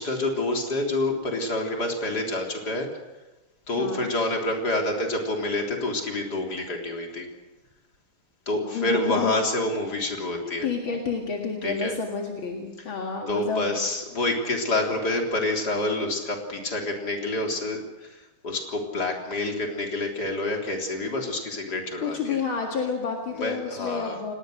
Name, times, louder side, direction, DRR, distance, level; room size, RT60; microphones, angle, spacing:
voice 1, 0.0-2.9 3.7-7.3 8.5-10.7 11.6-11.9 13.3-22.4 23.3-24.2, left 2 dB, 50° left, 1 dB, 4.1 m, -28 dB
voice 2, 3.8-4.1 8.6-9.3 10.6-13.8 22.0-24.3, left 5 dB, 70° left, 1 dB, 2.8 m, -29 dB
28.5 x 19.5 x 6.5 m, 1.1 s
omnidirectional pair, 2.3 m